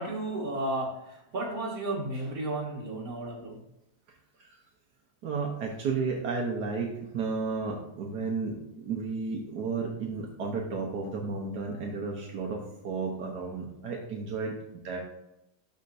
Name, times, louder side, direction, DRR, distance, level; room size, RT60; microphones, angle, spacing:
voice 1, 0.0-3.6 4.4-4.5, right 1 dB, 60° right, -3 dB, 2.3 m, -33 dB
voice 2, 5.2-15.0, right 4 dB, 90° right, -1 dB, 1.6 m, -33 dB
12.0 x 4.3 x 2.6 m, 0.86 s
omnidirectional pair, 1.7 m